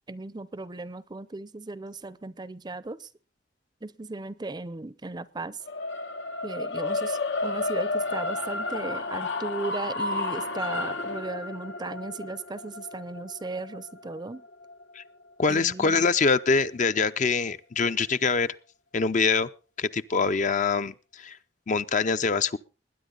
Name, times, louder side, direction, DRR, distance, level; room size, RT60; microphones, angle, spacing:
voice 1, 0.1-3.1 3.8-5.6 6.4-14.4 15.5-16.1, right 3 dB, 25° right, 0.6 m, -36 dB
sound 1, 5.6-15.8, left 2 dB, 80° left, 1.1 m, -32 dB
voice 2, 15.4-18.6 18.9-19.5 19.8-21.4 21.7-22.6, left 4 dB, 45° left, 0.6 m, -24 dB
21.0 x 9.9 x 3.9 m
head